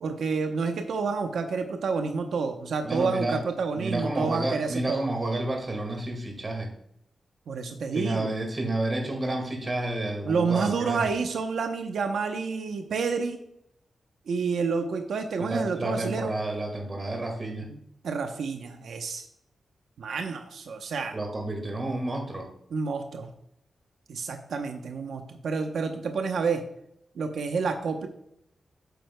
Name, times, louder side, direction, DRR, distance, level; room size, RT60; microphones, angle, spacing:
voice 1, 0.0-5.0 7.5-8.3 10.3-13.4 14.3-16.3 17.6-17.8 18.0-19.3 20.0-21.2 22.7-23.3 24.1-26.6 27.2-28.1, right 5 dB, 85° right, 5 dB, 0.7 m, -29 dB
voice 2, 2.8-3.4 3.8-6.7 7.9-11.1 15.4-17.7 21.1-22.5, right 2 dB, 25° right, 3 dB, 1.9 m, -30 dB
9.1 x 7.8 x 2.2 m, 0.75 s
wide cardioid pair, 140°, 0 cm